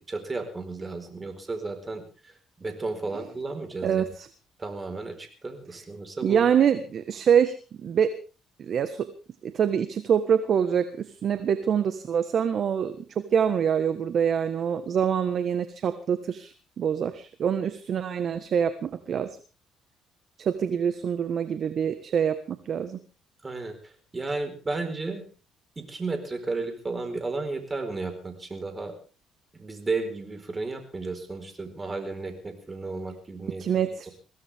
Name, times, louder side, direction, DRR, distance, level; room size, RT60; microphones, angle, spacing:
voice 1, 0.0-2.0 2.6-4.1 4.6-6.4 23.4-25.2 25.8-28.9 29.5-34.1, right 3 dB, 25° right, 6 dB, 4.7 m, -33 dB
voice 2, 3.8-4.3 6.2-7.5 7.8-8.1 8.6-9.1 9.4-13.0 13.3-19.3 20.4-23.0 33.6-34.1, right 8 dB, 55° right, 10 dB, 1.4 m, -25 dB
23.0 x 16.5 x 3.6 m, 0.36 s
cardioid pair, 100°, 0 cm